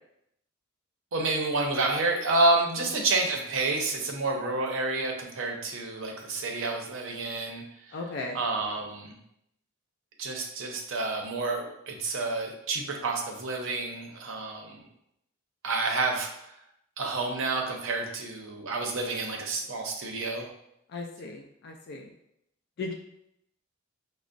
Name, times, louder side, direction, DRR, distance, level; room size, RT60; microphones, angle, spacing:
voice 1, 1.1-8.0 8.3-9.2 10.2-14.9 15.6-16.5 17.0-20.5, right 3 dB, 65° right, 2 dB, 0.6 m, -29 dB
voice 2, 7.9-8.4 20.9-22.1 22.8-22.9, left 3 dB, 50° left, 1 dB, 0.3 m, -36 dB
5.2 x 2.0 x 2.5 m, 0.79 s
head